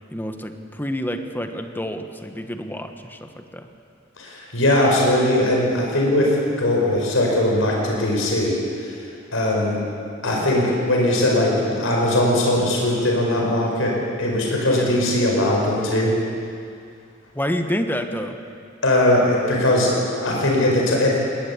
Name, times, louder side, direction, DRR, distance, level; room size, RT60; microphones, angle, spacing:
voice 1, 0.1-3.7 14.7-14.9 17.3-18.4, equal, 10° left, 6 dB, 1.3 m, -28 dB
voice 2, 4.2-8.9 9.3-9.8 10.2-16.2 18.8-21.2, left 1 dB, 90° left, -1 dB, 5.1 m, -20 dB
20.5 x 20.0 x 8.5 m, 2.3 s
head